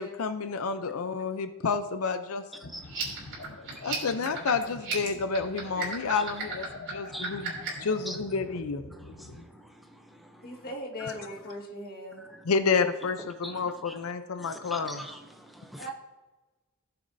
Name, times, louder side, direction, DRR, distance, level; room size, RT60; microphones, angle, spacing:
voice 1, 0.0-2.4 3.8-6.6 6.9-7.5 7.8-8.8 12.5-15.0, left 5 dB, 85° left, 10 dB, 0.6 m, -29 dB
sound 1, 2.6-9.4, left 2 dB, 65° left, 0.9 m, -46 dB
voice 2, 2.6-4.1 6.1-6.3 7.1-8.2 8.9-10.6 11.0-11.1 12.3-12.4 13.4-14.0 14.4-15.9, equal, ahead, 4 dB, 0.6 m, -45 dB
sound 2, 2.8-7.9, right 6 dB, 60° right, 2.8 m, -36 dB
voice 3, 10.4-12.2 15.8-15.9, left 1 dB, 45° left, 2 dB, 1.7 m, -39 dB
16.5 x 6.9 x 2.7 m, 1.2 s
head